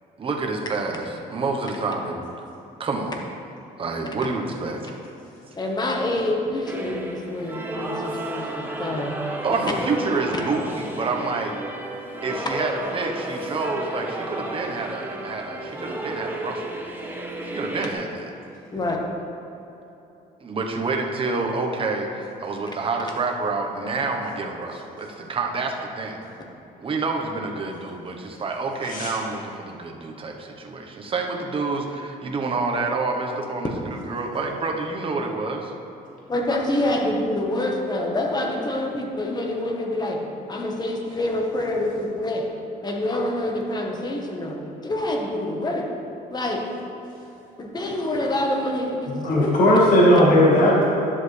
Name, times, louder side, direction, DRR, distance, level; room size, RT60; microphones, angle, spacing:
voice 1, 0.2-2.2 2.8-3.2 3.8-5.0 9.3-11.6 12.2-16.8 17.4-18.3 20.4-26.2 26.8-35.7, right 3 dB, 30° right, 2 dB, 1.0 m, -28 dB
voice 2, 5.6-9.1 9.5-9.6 18.7-19.0 36.3-40.2 40.5-42.5 42.8-44.6 44.8-45.9 46.3-46.6 47.6-49.8 50.1-50.2, left 1 dB, 25° left, 1 dB, 1.2 m, -26 dB
sound 1, 6.7-17.9, right 1 dB, 10° right, 0.9 m, -32 dB
voice 3, 49.2-50.9, equal, 55° left, -5 dB, 1.9 m, -17 dB
10.5 x 7.2 x 3.3 m, 2.9 s
cardioid pair, 110°, 17 cm